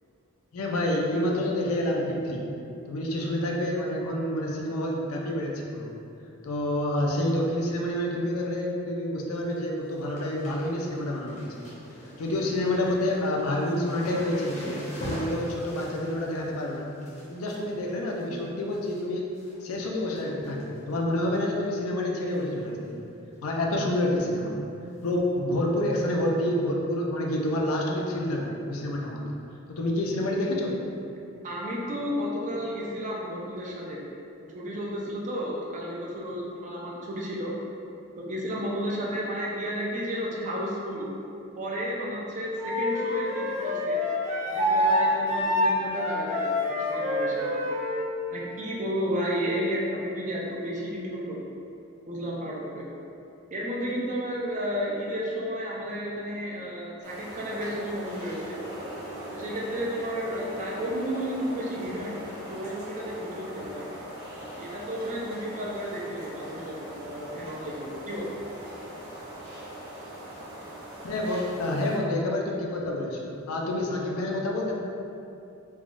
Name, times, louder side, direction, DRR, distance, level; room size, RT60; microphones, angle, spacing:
voice 1, 0.5-2.5 2.9-5.9 6.4-11.5 12.2-14.6 15.0-16.9 17.3-19.3 19.6-23.0 23.4-24.6 25.0-29.2 29.7-30.8 71.0-74.7, left 1 dB, 85° left, -1 dB, 0.4 m, -28 dB
sound 1, 9.2-9.5 9.8-19.0 19.3-19.8 20.1-20.9 21.3-21.4 22.3-22.6 22.8-22.9 23.3-23.4 25.0-25.1 25.9-26.0, equal, 35° left, 0.6 m, -42 dB
voice 2, 31.4-34.0 34.4-37.5 38.2-41.1 41.6-44.0 44.4-46.5 46.9-47.6 48.3-51.4 52.0-52.9 53.5-58.6 59.3-62.2 62.5-63.9 64.6-68.3, equal, 35° right, -3 dB, 0.4 m, -32 dB
Wind instrument woodwind instrument, 42.6-48.0, left 1 dB, 20° right, 1.0 m, -26 dB
sound 2, 57.0-72.0, right 1 dB, 60° right, 1.2 m, -41 dB
3.3 x 2.2 x 2.5 m, 2.7 s
head